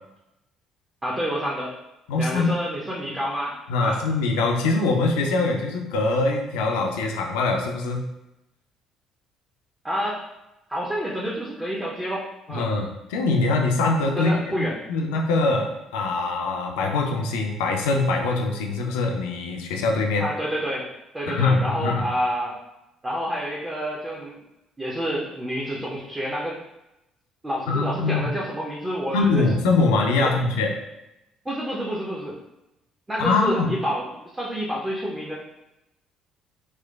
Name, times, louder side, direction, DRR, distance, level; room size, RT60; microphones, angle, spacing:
voice 1, 1.0-1.7 2.2-4.0 9.8-10.2 10.7-12.7 14.2-14.8 20.2-20.9 21.1-22.6 23.0-24.4 24.8-26.6 27.4-29.5 30.2-30.3 31.4-32.4 33.1-34.1 34.3-35.3, equal, 15° right, -4 dB, 0.6 m, -28 dB
voice 2, 2.1-2.6 3.7-8.1 12.5-20.2 21.3-22.1 27.7-28.3 29.1-30.7 33.2-33.8, left 3 dB, 65° left, 1 dB, 0.4 m, -23 dB
4.3 x 2.1 x 2.3 m, 0.92 s
figure-of-eight pair, 50°, 0 cm